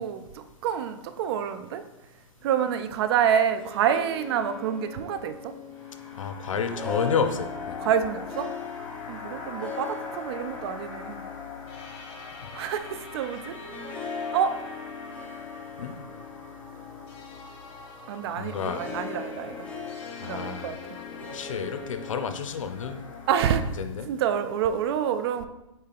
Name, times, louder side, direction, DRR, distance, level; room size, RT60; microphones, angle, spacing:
voice 1, 0.0-1.8 2.4-5.5 7.8-8.5 9.1-11.2 12.5-13.5 14.3-14.5 18.1-19.7 20.2-20.8 23.3-25.5, right 8 dB, 55° right, 10 dB, 0.4 m, -27 dB
Harp, 3.4-23.2, left 5 dB, 10° left, 0.8 m, -40 dB
sound 1, 5.7-23.5, left 4 dB, 55° left, 0.9 m, -43 dB
voice 2, 6.2-7.8 15.8-16.0 18.4-18.8 20.2-20.8 21.3-23.0 23.8-24.1, left 6 dB, 85° left, 9 dB, 0.5 m, -30 dB
4.4 x 3.3 x 3.4 m, 0.93 s
hypercardioid pair, 125°, 16 cm